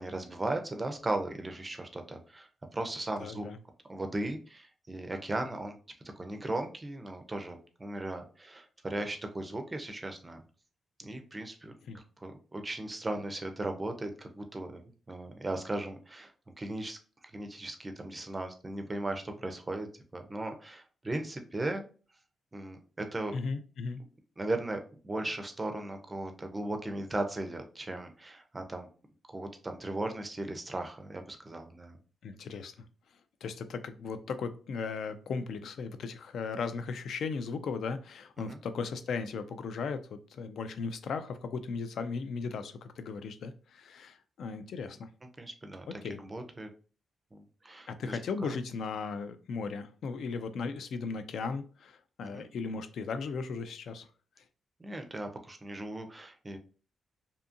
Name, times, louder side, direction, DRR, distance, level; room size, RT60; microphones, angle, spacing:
voice 1, 0.0-3.5 3.9-5.8 6.2-10.4 11.0-16.3 16.6-17.0 17.3-19.9 20.1-21.8 22.5-23.4 24.4-28.9 29.3-32.0 38.5-38.6 45.4-45.8 46.2-46.7 47.3-48.5 52.3-52.4 54.8-56.6, right 2 dB, 20° right, 5 dB, 0.4 m, -37 dB
voice 2, 3.2-3.6 11.9-12.0 23.3-24.0 32.2-32.7 33.4-45.1 46.0-46.2 47.9-54.1, left 5 dB, 70° left, 10 dB, 0.3 m, -37 dB
2.6 x 2.5 x 2.5 m, 0.38 s
wide cardioid pair, 145°, 0 cm